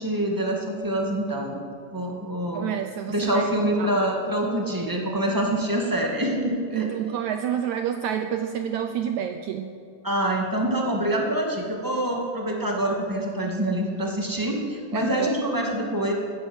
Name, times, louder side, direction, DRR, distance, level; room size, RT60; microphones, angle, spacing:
voice 1, 0.0-1.6 1.9-2.7 3.1-6.9 10.0-16.1, right 1 dB, 20° right, 0 dB, 0.5 m, -25 dB
voice 2, 2.5-3.5 3.8-3.9 6.7-9.7 14.9-15.3, right 9 dB, 80° right, 8 dB, 1.7 m, -28 dB
16.5 x 13.5 x 6.3 m, 2.5 s
omnidirectional pair, 4.0 m